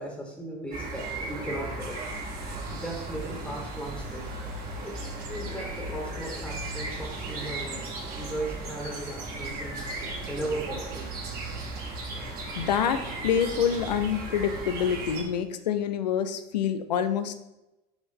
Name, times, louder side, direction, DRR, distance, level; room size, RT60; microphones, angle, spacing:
voice 1, 0.0-2.0 2.7-4.3 4.8-7.8 8.1-11.1 12.1-12.3, right 1 dB, 5° left, -1 dB, 1.8 m, -37 dB
sound 1, 0.7-15.2, right 2 dB, 45° right, 2.2 m, -36 dB
sound 2, 9.1-14.2, right 3 dB, 85° right, 1.2 m, -47 dB
voice 2, 12.5-17.4, left 8 dB, 75° left, 10 dB, 0.6 m, -27 dB
5.6 x 4.5 x 5.5 m, 0.96 s
figure-of-eight pair, 65°, 21 cm